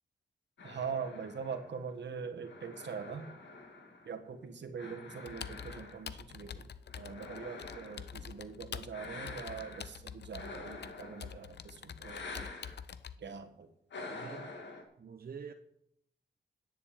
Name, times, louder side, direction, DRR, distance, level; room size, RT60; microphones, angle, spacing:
sound 1, 0.6-4.3 4.8-6.3 6.9-8.2 8.9-9.9 10.3-11.5 12.0-12.8 13.9-14.8, left 3 dB, 85° left, 2.2 m, -47 dB
voice 1, 0.6-3.3 4.0-6.7 7.0-12.2 13.2-13.7, right 6 dB, 80° right, 6 dB, 1.6 m, -42 dB
Computer keyboard, 5.3-13.1, left 7 dB, 70° left, 0.6 m, -46 dB
voice 2, 14.1-14.5 15.0-15.5, right 6 dB, 55° right, 6 dB, 0.9 m, -46 dB
10.5 x 6.9 x 8.5 m, 0.74 s
wide cardioid pair, 90°, 18 cm